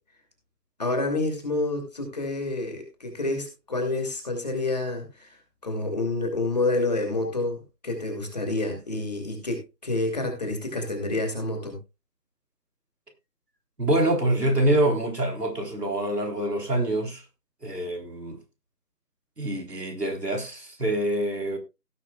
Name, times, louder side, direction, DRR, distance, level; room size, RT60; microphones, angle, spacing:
voice 1, 0.8-5.3 5.6-11.8, left 2 dB, 25° left, 2.7 m, -28 dB
voice 2, 13.8-17.2 17.6-18.4 19.4-21.6, right 1 dB, 75° right, 3.8 m, -25 dB
17.0 x 9.0 x 2.4 m
figure-of-eight pair, 165°, 48 cm